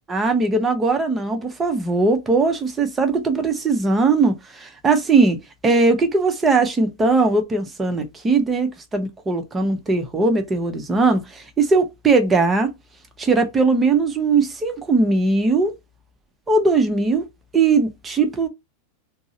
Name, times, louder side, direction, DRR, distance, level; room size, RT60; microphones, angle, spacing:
voice 1, 0.1-5.4 5.6-12.7 13.2-15.8 16.5-17.2 17.5-18.5, right 3 dB, 20° right, 0.7 m, -19 dB
3.6 x 2.0 x 2.6 m
figure-of-eight pair, 85°, 0 cm